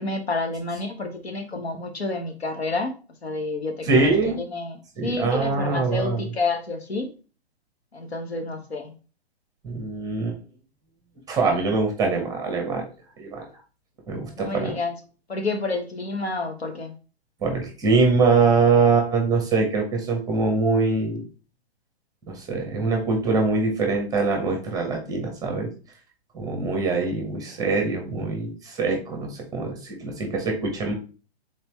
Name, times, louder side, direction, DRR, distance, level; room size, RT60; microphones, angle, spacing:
voice 1, 0.0-2.9 3.2-7.1 7.9-8.9 14.4-15.0 15.3-16.9, left 3 dB, 70° left, 4 dB, 1.2 m, -29 dB
voice 2, 3.8-4.4 5.0-6.2 9.6-10.4 11.3-12.8 13.2-13.4 14.1-14.8 17.4-21.2 22.3-25.7 26.3-30.9, right 4 dB, 10° right, 2 dB, 0.9 m, -23 dB
4.3 x 3.9 x 3.2 m, 0.35 s
figure-of-eight pair, 120°, 32 cm